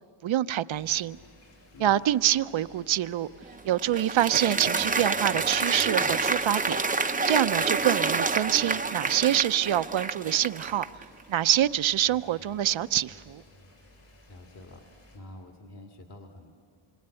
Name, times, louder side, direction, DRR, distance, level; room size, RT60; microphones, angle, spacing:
voice 1, 0.2-1.2 1.8-3.3 3.6-6.8 7.3-10.8 11.3-13.4, right 11 dB, 65° right, 13 dB, 0.7 m, -25 dB
sound 1, 0.7-15.2, left 1 dB, 85° left, 7.3 m, -56 dB
Applause, 3.4-11.0, right 4 dB, 15° right, 0.6 m, -28 dB
voice 2, 14.0-14.8 15.1-16.5, left 1 dB, 50° left, 2 dB, 2.1 m, -47 dB
27.0 x 24.0 x 9.0 m, 2.6 s
wide cardioid pair, 125°, 49 cm